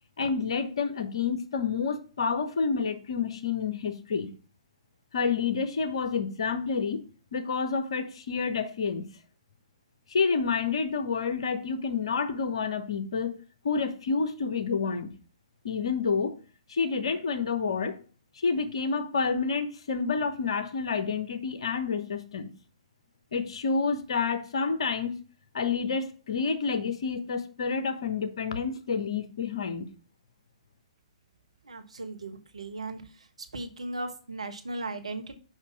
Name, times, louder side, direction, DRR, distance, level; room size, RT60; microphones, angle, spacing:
voice 1, 0.2-4.3 5.1-7.0 7.3-9.1 10.1-13.4 13.6-15.1 15.6-16.4 16.7-18.0 18.4-22.5 23.3-25.1 25.5-29.9, left 5 dB, 55° left, 1.0 m, -29 dB
voice 2, 31.7-33.0 33.5-35.4, right 2 dB, 65° right, 1.1 m, -37 dB
5.8 x 5.1 x 4.7 m
figure-of-eight pair, 120°, 3 cm